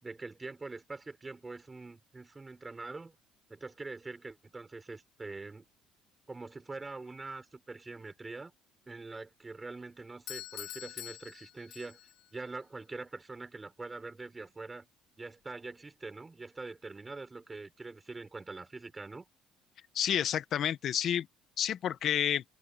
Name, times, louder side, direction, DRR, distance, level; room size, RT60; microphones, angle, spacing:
voice 1, 0.0-3.2 3.5-5.7 6.3-8.5 8.9-12.0 12.3-14.9 15.2-19.2, right 3 dB, 15° right, 5.8 m, -44 dB
Doorbell, 10.3-12.3, left 14 dB, 75° left, 2.6 m, -45 dB
voice 2, 19.9-21.3 21.6-22.4, left 10 dB, 50° left, 1.3 m, -30 dB
open air
cardioid pair, 125°, 0 cm